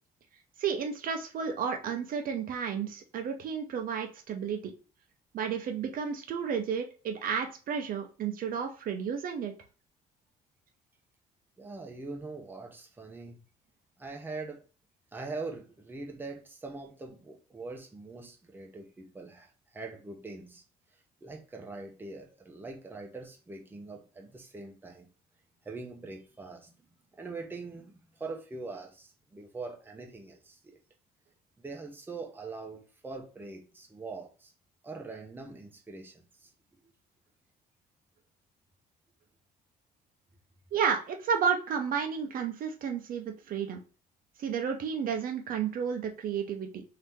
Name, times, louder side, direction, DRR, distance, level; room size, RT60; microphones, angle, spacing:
voice 1, 0.6-4.7 5.3-9.5 40.7-43.8 44.4-46.8, right 7 dB, 55° right, 0.7 m, -32 dB
voice 2, 11.6-13.4 14.0-14.6 15.1-20.6 21.2-25.1 25.6-26.8 27.1-30.8 31.6-34.5 34.8-36.5 36.8-36.9, right 3 dB, 10° right, 0.7 m, -43 dB
2.8 x 2.8 x 3.5 m
cardioid pair, 110°, 17 cm